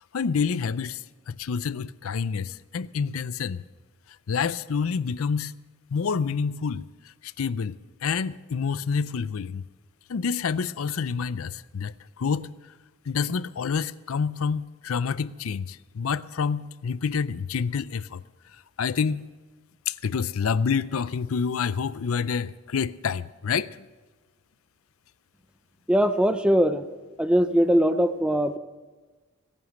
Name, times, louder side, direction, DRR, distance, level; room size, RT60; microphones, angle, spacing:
voice 1, 0.1-3.6 4.3-5.5 5.9-6.9 7.2-9.6 10.1-12.5 13.1-18.2 18.8-19.2 19.9-23.7, left 6 dB, 75° left, 0.5 m, -28 dB
voice 2, 25.9-26.8 27.2-28.6, equal, 5° right, 0.6 m, -21 dB
17.5 x 11.0 x 6.5 m
head